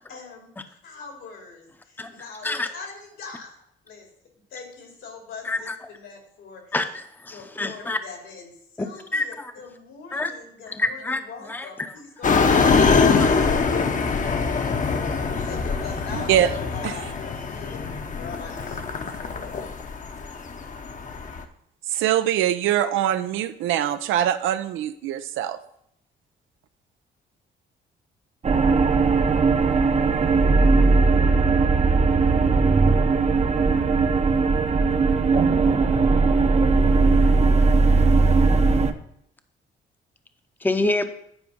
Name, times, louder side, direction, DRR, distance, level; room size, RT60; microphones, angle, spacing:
voice 1, 0.1-3.5 3.8-4.1 4.5-6.8 7.3-13.4 15.4-17.8 18.2-19.7, left 4 dB, 80° left, 1 dB, 2.7 m, -41 dB
voice 2, 5.4-5.8 6.7-8.0 8.8-9.5 10.1-10.3 10.7-11.2 11.5-11.7 13.2-13.3 40.6-41.0, left 2 dB, 10° left, 8 dB, 0.7 m, -27 dB
sound 1, 12.2-21.4, left 5 dB, 40° left, 0.9 m, -23 dB
voice 3, 16.1-16.5 16.8-16.9 21.9-25.6, right 11 dB, 90° right, 11 dB, 0.6 m, -23 dB
sound 2, 28.4-38.9, right 4 dB, 35° right, 0.7 m, -18 dB
9.9 x 4.7 x 5.3 m, 0.72 s
cardioid pair, 90°, 20 cm